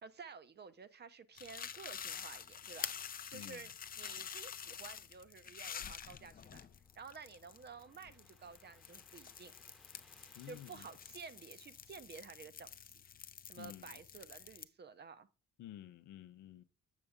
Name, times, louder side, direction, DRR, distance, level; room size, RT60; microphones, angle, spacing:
voice 1, 0.0-2.9 3.3-3.7 4.0-6.7 7.0-9.5 10.5-12.9 13.4-15.3, right 5 dB, 35° right, 0.6 m, -52 dB
sound 1, 1.4-14.6, left 8 dB, 30° left, 0.4 m, -48 dB
voice 2, 3.3-3.7 10.3-10.9 13.6-14.0 15.6-16.6, left 12 dB, 75° left, 0.6 m, -52 dB
sound 2, 6.2-12.5, equal, ahead, 0.8 m, -69 dB
6.8 x 6.6 x 3.5 m
cardioid pair, 90°, 30 cm